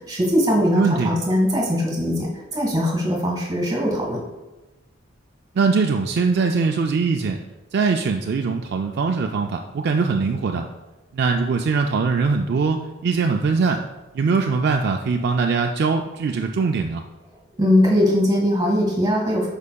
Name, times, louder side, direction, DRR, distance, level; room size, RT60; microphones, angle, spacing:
voice 1, 0.1-4.2 17.6-19.5, left 1 dB, 20° right, -1 dB, 1.6 m, -20 dB
voice 2, 0.7-1.1 5.5-7.4 7.7-10.6 11.1-13.8 14.1-17.0, right 4 dB, 50° right, 3 dB, 0.3 m, -21 dB
8.3 x 5.5 x 2.3 m, 1.1 s
head